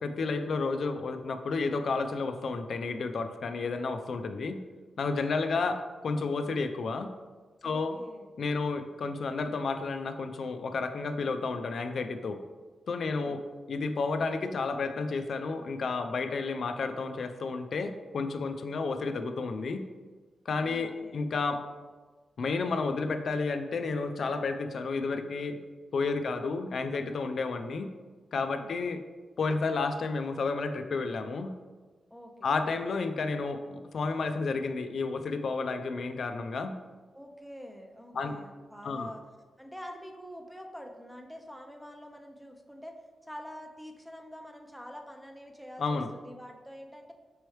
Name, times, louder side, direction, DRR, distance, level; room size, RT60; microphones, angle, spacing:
voice 1, 0.0-4.6 5.0-7.1 7.6-8.0 8.4-12.4 12.9-13.4 13.7-19.8 20.5-21.6 22.4-25.6 25.9-27.9 28.3-29.0 29.4-31.5 32.4-36.7 38.1-38.3 38.8-39.1 45.8-46.1, left 4 dB, 65° left, 8 dB, 0.3 m, -31 dB
voice 2, 7.6-8.3 20.6-21.3 28.5-28.7 32.1-32.5 37.1-39.2 39.6-47.1, equal, ahead, 3 dB, 0.5 m, -46 dB
5.4 x 3.0 x 3.1 m, 1.3 s
cardioid pair, 70°, 0 cm